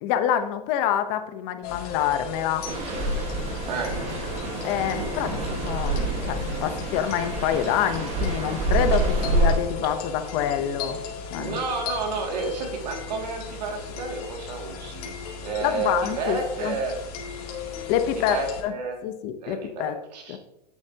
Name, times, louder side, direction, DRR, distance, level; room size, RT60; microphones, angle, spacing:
voice 1, 0.0-2.7 4.6-11.0 11.3-11.6 15.6-16.7 17.9-18.7 19.0-20.0 20.3-20.4, left 10 dB, 45° left, 9 dB, 0.9 m, -26 dB
sound 1, 1.6-18.6, left 6 dB, 65° left, 2.6 m, -36 dB
sound 2, 2.6-9.6, right 2 dB, 30° right, 1.6 m, -27 dB
voice 2, 10.5-15.1 15.4-17.0 18.3-19.0 19.4-20.4, right 3 dB, 85° right, 2 dB, 2.4 m, -31 dB
10.0 x 8.1 x 2.9 m, 0.87 s
supercardioid pair, 150°, 21 cm